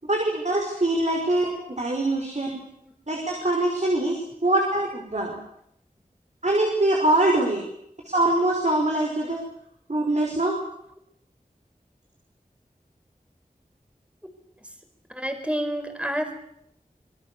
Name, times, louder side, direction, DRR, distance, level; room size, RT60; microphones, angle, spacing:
voice 1, 0.0-2.6 3.1-5.4 6.4-7.6 8.1-9.4 9.9-10.5, right 1 dB, 50° right, 1 dB, 5.5 m, -23 dB
voice 2, 15.1-16.3, equal, 10° right, 6 dB, 4.6 m, -28 dB
26.0 x 23.0 x 7.0 m, 0.75 s
wide cardioid pair, 50°, 15 cm